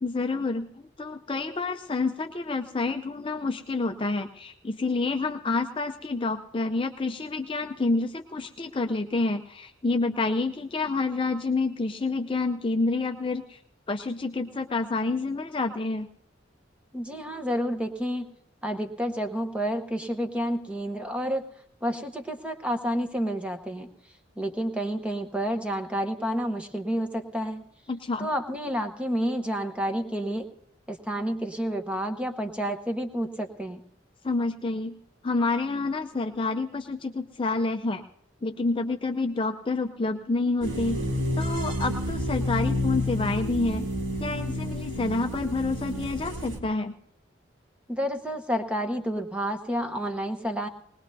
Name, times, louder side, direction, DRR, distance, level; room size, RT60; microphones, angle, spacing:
voice 1, 0.0-13.6 13.9-16.1 27.9-28.3 34.2-35.0 35.2-38.0 38.4-41.0 41.4-43.9 44.2-46.9, left 3 dB, 25° left, 6 dB, 0.5 m, -28 dB
voice 2, 16.9-18.3 18.6-21.4 21.8-23.9 24.4-27.7 28.2-30.5 30.9-33.8 47.9-50.7, equal, 5° right, 6 dB, 0.9 m, -30 dB
sound 1, 40.6-46.6, left 1 dB, 75° right, 1.8 m, -30 dB
20.0 x 20.0 x 2.7 m, 0.73 s
head